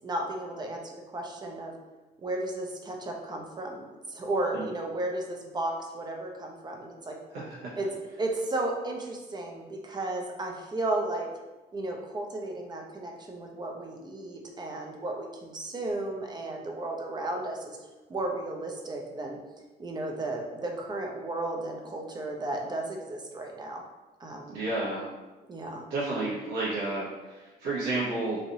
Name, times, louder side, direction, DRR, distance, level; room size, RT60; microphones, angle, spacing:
voice 1, 0.0-1.7 2.2-7.2 7.8-7.9 8.2-11.3 11.7-17.8 18.1-19.4 19.8-23.8 24.2-24.6 25.5-25.9, right 2 dB, 25° right, 1 dB, 0.5 m, -34 dB
voice 2, 7.3-7.7 24.5-25.0 25.9-28.4, right 2 dB, 80° right, -8 dB, 0.9 m, -31 dB
3.1 x 2.6 x 2.7 m, 1.2 s
cardioid pair, 110°, 17 cm